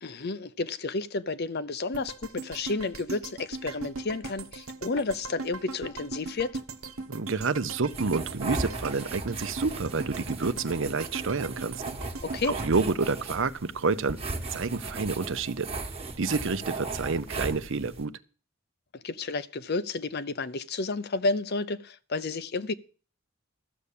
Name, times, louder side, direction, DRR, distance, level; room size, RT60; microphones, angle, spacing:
voice 1, 0.0-6.6 12.2-12.6 18.9-22.7, left 3 dB, 50° left, 0.7 m, -31 dB
sound 1, 1.9-14.1 14.5-14.6, right 3 dB, 85° right, 1.1 m, -40 dB
voice 2, 7.1-11.8 12.5-14.2 14.5-15.7 16.2-18.1, right 4 dB, 65° right, 0.8 m, -29 dB
sound 2, 7.9-18.0, right 3 dB, 30° right, 1.4 m, -37 dB
13.5 x 7.1 x 8.4 m
head